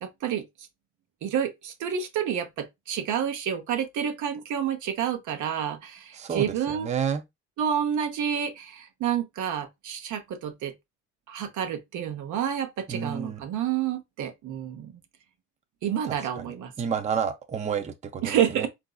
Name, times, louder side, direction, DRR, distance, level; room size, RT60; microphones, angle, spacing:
voice 1, 0.0-0.4 1.2-6.9 7.6-10.7 11.3-14.9 15.8-16.7 18.2-18.7, right 9 dB, 75° right, 0.8 m, -29 dB
voice 2, 6.1-7.2 12.9-13.4 16.1-16.4 16.8-18.7, right 7 dB, 25° right, 0.5 m, -30 dB
3.9 x 2.5 x 2.2 m
cardioid pair, 90°, 30 cm